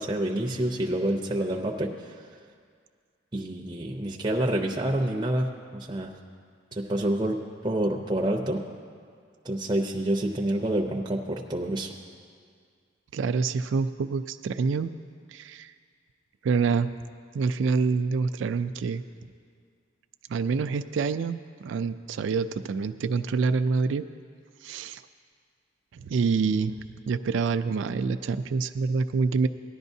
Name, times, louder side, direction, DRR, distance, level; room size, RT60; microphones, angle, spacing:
voice 1, 0.0-2.1 3.3-6.1 6.7-8.6 9.4-11.9, right 1 dB, 20° right, 0 dB, 0.6 m, -28 dB
voice 2, 13.1-14.9 15.3-15.7 16.4-16.9 17.3-19.0 20.3-24.1 24.6-25.0 26.0-26.7 27.1-29.5, right 5 dB, 70° right, 10 dB, 0.3 m, -26 dB
17.0 x 11.0 x 2.7 m, 2.1 s
head